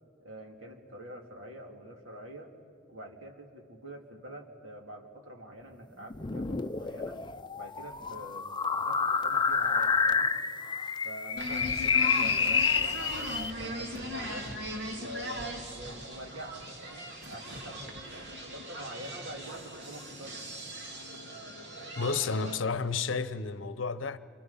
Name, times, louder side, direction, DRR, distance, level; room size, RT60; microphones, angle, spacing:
voice 1, 0.2-2.5 2.9-7.2 7.6-8.5 8.8-10.3 11.0-14.5 14.9-17.9 18.5-20.4 22.4-22.8, right 1 dB, 90° right, 2.6 m, -46 dB
sound 1, 6.1-13.5, left 5 dB, 25° left, 0.5 m, -29 dB
sound 2, 11.4-22.6, equal, 60° right, 2.5 m, -39 dB
voice 2, 22.0-24.2, left 4 dB, 70° left, 0.8 m, -31 dB
28.0 x 25.5 x 5.7 m
head